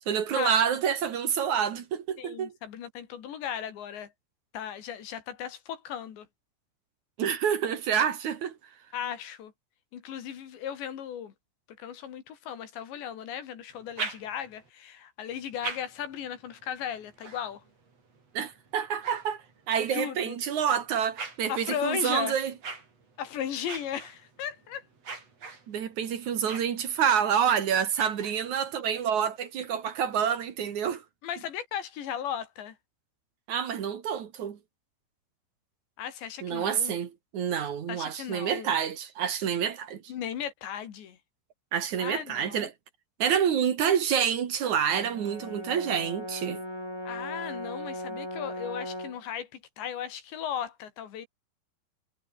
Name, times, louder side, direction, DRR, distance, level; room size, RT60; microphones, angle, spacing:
voice 1, 0.1-2.5 7.2-8.6 18.3-19.4 19.7-22.5 25.7-31.0 33.5-34.6 36.4-40.0 41.7-42.7 43.2-46.6, right 8 dB, 55° right, 2.4 m, -28 dB
voice 2, 2.2-4.1 4.5-6.3 8.9-9.5 9.9-11.3 11.8-17.6 19.9-20.4 21.5-22.4 23.2-24.8 31.2-32.8 36.0-36.9 37.9-38.7 40.1-41.2 42.0-42.7 47.1-51.3, left 9 dB, 65° left, 4.6 m, -36 dB
sound 1, 13.7-14.7 15.3-19.9 20.5-28.8, right 4 dB, 30° right, 5.4 m, -44 dB
Brass instrument, 44.9-49.2, left 1 dB, 5° left, 6.2 m, -38 dB
omnidirectional pair, 5.8 m